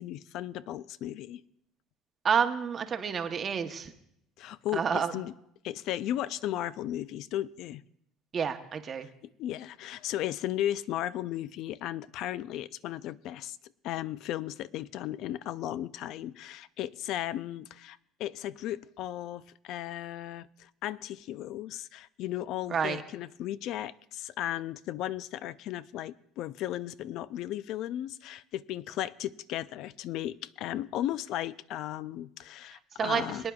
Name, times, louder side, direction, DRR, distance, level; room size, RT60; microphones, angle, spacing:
voice 1, 0.0-1.4 4.4-5.3 5.6-7.8 9.2-13.6 13.8-33.4, left 13 dB, 60° left, 18 dB, 0.4 m, -35 dB
voice 2, 2.2-3.9 4.7-5.1 8.3-9.1 22.7-23.0 32.7-33.5, right 7 dB, 35° right, 7 dB, 0.8 m, -29 dB
23.0 x 9.7 x 2.3 m, 0.75 s
cardioid pair, 125°, 0 cm